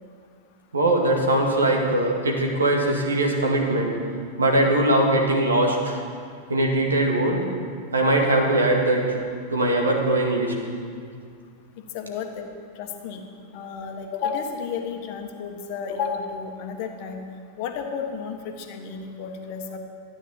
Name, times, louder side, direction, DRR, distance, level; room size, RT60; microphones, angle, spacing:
voice 1, 0.7-4.0 4.4-6.0 6.5-7.5 7.9-9.2 9.5-10.6, right 1 dB, 75° right, 1 dB, 2.1 m, -21 dB
voice 2, 11.9-12.5 12.8-13.2 13.5-17.2 17.6-19.8, left 6 dB, 45° left, 5 dB, 1.4 m, -32 dB
13.5 x 9.7 x 7.2 m, 2.2 s
figure-of-eight pair, 90°, 0 cm